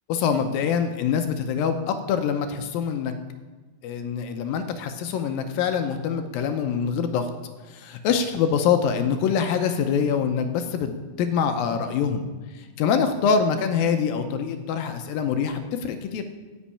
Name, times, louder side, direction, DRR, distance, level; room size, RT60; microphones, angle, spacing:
voice 1, 0.1-3.1 3.8-7.3 7.7-12.3 12.8-16.2, left 7 dB, 80° left, 7 dB, 2.3 m, -24 dB
9.8 x 6.2 x 8.5 m, 1.3 s
omnidirectional pair, 4.4 m